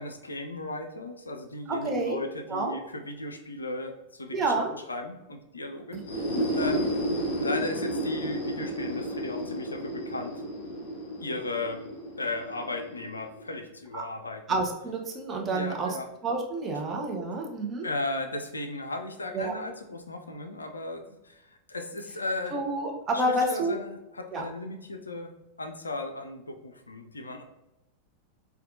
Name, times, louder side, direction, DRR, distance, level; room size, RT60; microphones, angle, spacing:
voice 1, 0.0-4.5 4.9-6.8 7.4-10.3 11.2-11.8 12.2-14.6 15.5-16.1 17.8-22.6 23.1-25.3 25.6-27.4, left 2 dB, 75° left, 5 dB, 0.3 m, -36 dB
voice 2, 1.7-2.2 2.5-2.8 4.3-4.7 5.9-6.0 6.3-6.8 13.9-14.0 14.5-16.0 16.2-17.9 19.3-19.5 22.5-23.8 24.3-24.4, right 2 dB, 25° right, 1 dB, 0.6 m, -29 dB
sound 1, 5.9-13.6, equal, 55° left, 0.8 m, -32 dB
4.1 x 2.2 x 2.6 m, 0.95 s
figure-of-eight pair, 90°, 0 cm